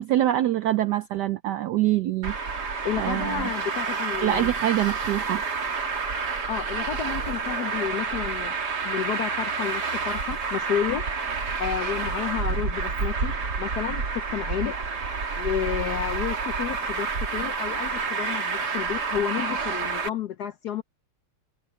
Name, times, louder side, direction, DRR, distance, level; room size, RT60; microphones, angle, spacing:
voice 1, 0.0-2.4 3.0-3.5 4.2-5.4, right 13 dB, 80° right, 0.9 m, -25 dB
Traffic noise roadway noise, 2.2-20.1, right 4 dB, 50° right, 2.7 m, -29 dB
voice 2, 2.8-4.5 6.5-8.6 8.8-11.1 11.6-14.8 15.4-20.8, left 9 dB, 70° left, 1.0 m, -31 dB
omnidirectional pair, 2.4 m